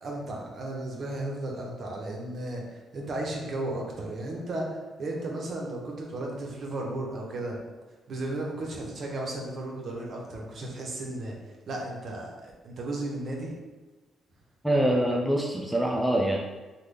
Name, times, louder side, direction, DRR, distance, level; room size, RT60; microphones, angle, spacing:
voice 1, 0.0-7.6 8.1-11.4 11.7-13.5, right 1 dB, 55° right, -1 dB, 0.8 m, -34 dB
voice 2, 14.6-16.4, right 1 dB, 5° right, 0 dB, 0.4 m, -24 dB
3.6 x 2.2 x 3.3 m, 1.2 s
cardioid pair, 90°, 0 cm